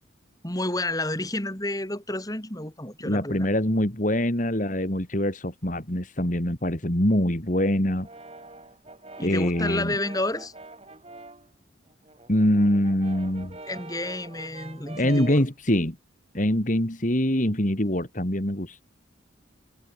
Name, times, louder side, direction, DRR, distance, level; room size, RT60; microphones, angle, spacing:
voice 1, 0.4-3.5 9.2-10.5 13.7-15.4, left 1 dB, 20° left, 4.3 m, -30 dB
voice 2, 3.0-8.1 9.2-9.9 12.3-13.6 15.0-16.0 16.3-18.8, left 1 dB, 40° left, 3.3 m, -24 dB
Brass instrument, 7.9-11.5 11.9-15.5, right 2 dB, 30° right, 4.5 m, -44 dB
head